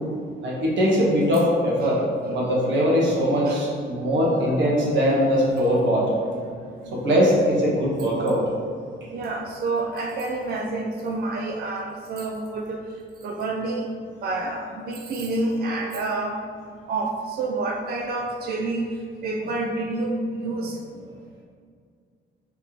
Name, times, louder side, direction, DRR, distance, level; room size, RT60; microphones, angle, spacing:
voice 1, 0.4-2.0 2.3-6.1 6.9-8.4, equal, 70° right, -4 dB, 1.1 m, -21 dB
voice 2, 6.4-6.9 9.1-13.9 14.2-16.4 16.9-20.8, right 2 dB, 50° right, 1 dB, 0.4 m, -29 dB
3.4 x 2.9 x 3.7 m, 2.1 s
cardioid pair, 90°, 20 cm